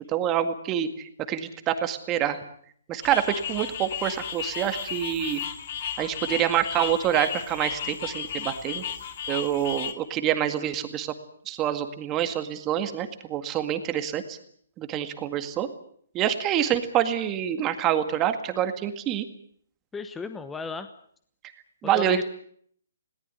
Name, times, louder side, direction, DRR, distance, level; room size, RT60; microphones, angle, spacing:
voice 1, 0.1-0.9 1.3-2.4 2.9-5.4 6.0-8.8 9.3-11.1 11.5-14.4 14.8-15.7 16.1-19.3 21.8-22.2, right 10 dB, 20° right, 9 dB, 1.9 m, -26 dB
sound 1, 3.0-9.9, left 8 dB, 40° left, 2.5 m, -34 dB
voice 2, 19.9-20.9 21.9-22.2, left 4 dB, 5° left, 10 dB, 1.0 m, -34 dB
21.0 x 18.5 x 9.5 m, 0.62 s
hypercardioid pair, 160°, 0 cm